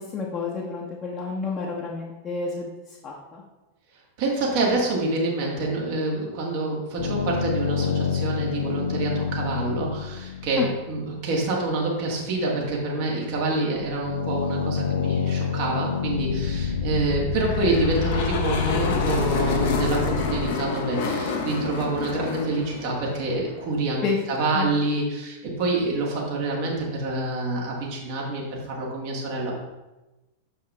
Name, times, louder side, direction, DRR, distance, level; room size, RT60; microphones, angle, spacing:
voice 1, 0.0-2.7 3.0-3.4 10.6-10.7 24.0-24.2 24.5-24.7, left 4 dB, 25° left, -3 dB, 1.0 m, -29 dB
voice 2, 4.2-29.6, right 2 dB, 50° right, -2 dB, 1.8 m, -27 dB
sound 1, 7.0-11.1 13.8-20.5, left 6 dB, 70° left, 0.5 m, -27 dB
sound 2, 17.3-23.8, left 4 dB, 50° left, 0.9 m, -29 dB
6.5 x 5.5 x 3.4 m, 1.0 s
figure-of-eight pair, 90°, 0 cm